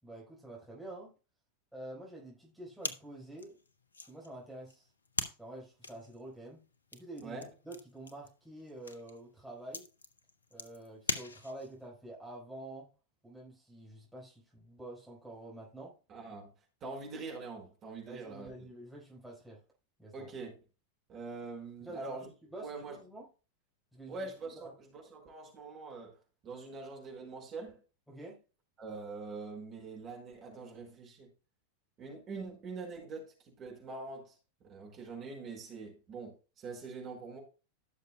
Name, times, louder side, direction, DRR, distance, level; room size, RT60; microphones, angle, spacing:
voice 1, 0.0-1.1 1.7-3.6 4.1-4.9 5.4-6.6 6.9-9.9 10.5-12.9 13.2-16.0 18.1-19.6 20.0-20.3 21.8-23.3 23.9-24.3 24.5-24.7 28.1-28.4, right 1 dB, ahead, 4.3 m, -48 dB
sound 1, 2.8-11.8, left 3 dB, 75° left, 0.9 m, -42 dB
voice 2, 16.1-16.5 16.8-18.7 20.1-20.5 21.1-22.3 22.6-23.0 24.1-27.8 28.8-31.3 32.0-34.4 34.7-37.4, right 3 dB, 30° right, 4.9 m, -44 dB
16.0 x 6.7 x 2.3 m
figure-of-eight pair, 90°, 0 cm